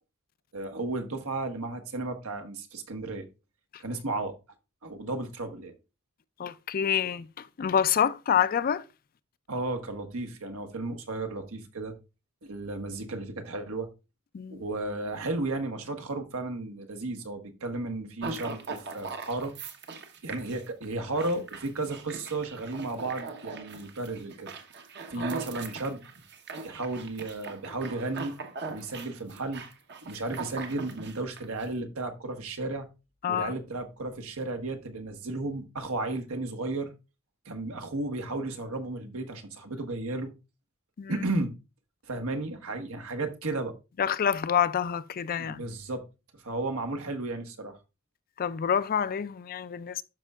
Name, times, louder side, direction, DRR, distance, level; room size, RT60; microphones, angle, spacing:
voice 1, 0.5-3.3 3.8-4.3 4.8-5.7 9.5-11.9 12.4-13.9 14.5-19.5 20.2-24.5 25.1-26.0 26.5-28.3 28.7-29.6 30.0-32.9 33.3-36.9 37.4-40.3 41.1-41.5 42.0-43.7 45.4-46.0 46.4-47.8, right 2 dB, 80° right, 1.3 m, -34 dB
voice 2, 6.4-8.8 14.3-14.6 33.2-33.5 41.0-41.1 44.0-45.6 48.4-50.0, left 8 dB, 45° left, 0.4 m, -27 dB
sound 1, 18.2-31.6, right 4 dB, 55° right, 1.0 m, -40 dB
12.0 x 5.4 x 2.4 m
head